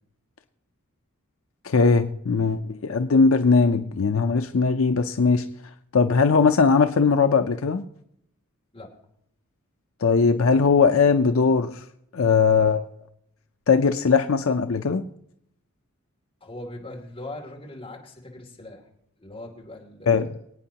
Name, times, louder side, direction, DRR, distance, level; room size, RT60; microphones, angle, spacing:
voice 1, 1.6-5.5 5.9-7.8 10.0-11.8 12.1-12.8 13.7-15.0 20.1-20.3, left 5 dB, 70° left, 7 dB, 0.6 m, -20 dB
voice 2, 16.4-18.8 19.2-20.3, left 1 dB, 25° left, -1 dB, 2.7 m, -40 dB
24.5 x 9.0 x 2.9 m, 0.73 s
head